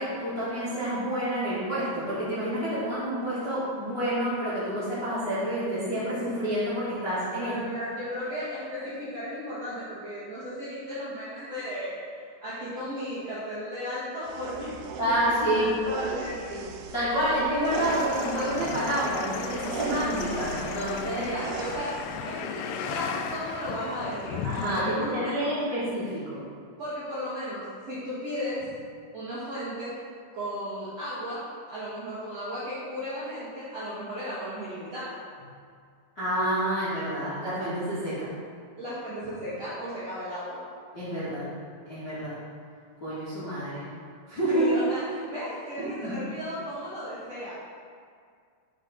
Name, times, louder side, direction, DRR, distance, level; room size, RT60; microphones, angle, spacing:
voice 1, 0.0-7.5 15.0-15.7 16.5-16.6 16.9-21.3 24.4-26.4 36.1-38.3 40.9-41.5 41.9-42.4 43.0-43.9 44.3-44.6 45.8-46.1, right 1 dB, 40° left, -14 dB, 1.6 m, -28 dB
voice 2, 7.3-12.0 12.4-16.5 21.1-21.9 22.2-24.4 24.8-25.5 26.8-28.7 29.1-30.0 30.3-35.1 38.8-40.6 44.5-47.5, equal, 55° right, -12 dB, 1.9 m, -35 dB
sound 1, 14.2-22.2, right 6 dB, 85° right, 3.0 m, -38 dB
sound 2, 17.7-24.8, left 7 dB, 85° left, 2.5 m, -36 dB
9.6 x 5.4 x 4.0 m, 2.2 s
omnidirectional pair, 5.3 m